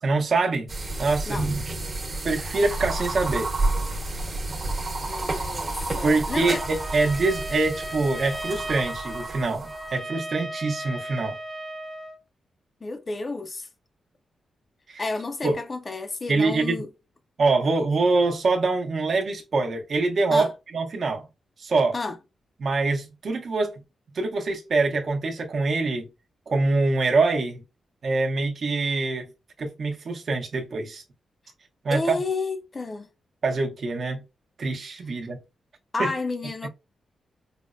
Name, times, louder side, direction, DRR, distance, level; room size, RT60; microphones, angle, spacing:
voice 1, 0.0-0.7 1.0-1.4 2.2-3.5 5.1-5.2 6.0-11.3 14.9-15.0 15.4-15.6 16.3-16.8 17.4-21.2 21.6-21.9 22.6-23.7 24.1-26.1 26.5-27.6 28.0-29.3 29.6-31.0 31.8-32.2 33.4-34.2 34.6-35.4 36.0-36.1, right 3 dB, 55° right, 0.8 m, -24 dB
sound 1, 0.7-10.0, right 2 dB, 35° right, 1.0 m, -30 dB
voice 2, 5.0-6.6 12.8-13.7 15.0-16.9 20.3-20.5 21.9-22.2 31.9-33.1 35.9-36.7, left 3 dB, 35° left, 0.4 m, -31 dB
Trumpet, 6.3-12.2, right 1 dB, 10° right, 0.7 m, -36 dB
4.9 x 2.0 x 2.4 m
cardioid pair, 100°, 0 cm